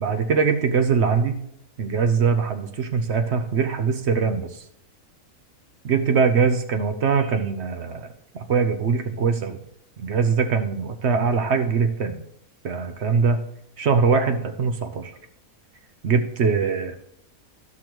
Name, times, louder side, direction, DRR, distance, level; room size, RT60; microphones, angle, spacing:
voice 1, 0.0-1.4 1.8-4.6 5.8-8.1 8.5-9.6 10.0-12.2 12.6-13.4 13.8-15.1 16.0-16.9, right 5 dB, 55° right, 8 dB, 0.9 m, -22 dB
13.5 x 6.1 x 3.0 m, 0.72 s
omnidirectional pair, 1.6 m